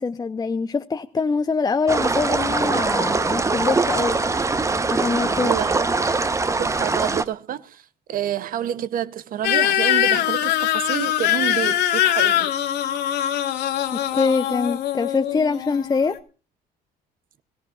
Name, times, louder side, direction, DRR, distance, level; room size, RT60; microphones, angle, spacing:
voice 1, 0.0-4.2 4.9-5.5 13.9-16.2, left 4 dB, 20° left, 0.7 m, -24 dB
sound 1, 1.9-7.2, right 3 dB, 15° right, 0.9 m, -22 dB
voice 2, 5.4-5.8 6.6-12.5, right 11 dB, 55° right, 0.8 m, -28 dB
sound 2, 9.4-16.2, left 12 dB, 75° left, 1.6 m, -22 dB
23.0 x 15.5 x 2.4 m
cardioid pair, 110°, 17 cm